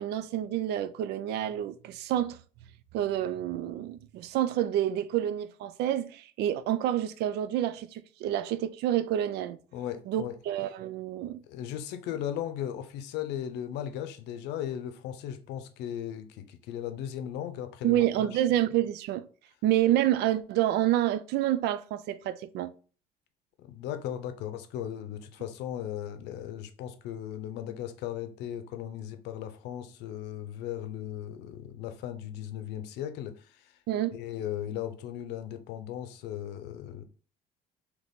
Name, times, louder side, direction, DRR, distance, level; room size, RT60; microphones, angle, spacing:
voice 1, 0.0-2.4 2.9-9.6 10.1-11.4 17.8-19.3 19.6-22.7 33.9-34.2, right 12 dB, 80° right, 0.4 m, -28 dB
voice 2, 9.7-10.4 11.5-18.4 23.6-33.7 34.1-37.0, left 10 dB, 90° left, 0.6 m, -37 dB
3.9 x 3.0 x 3.5 m
cardioid pair, 110°, 17 cm